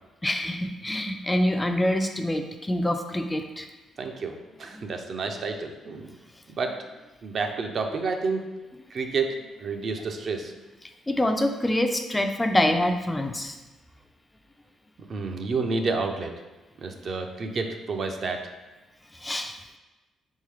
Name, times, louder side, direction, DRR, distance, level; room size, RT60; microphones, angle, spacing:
voice 1, 0.2-3.7 4.7-4.9 11.1-13.6 19.1-19.6, left 1 dB, 15° left, 6 dB, 0.3 m, -26 dB
voice 2, 4.0-6.2 6.6-6.8 7.2-8.4 8.9-10.6 15.1-16.4 16.8-18.5, right 4 dB, 50° right, 4 dB, 0.4 m, -30 dB
3.7 x 3.6 x 3.2 m, 1.1 s
cardioid pair, 90°, 0 cm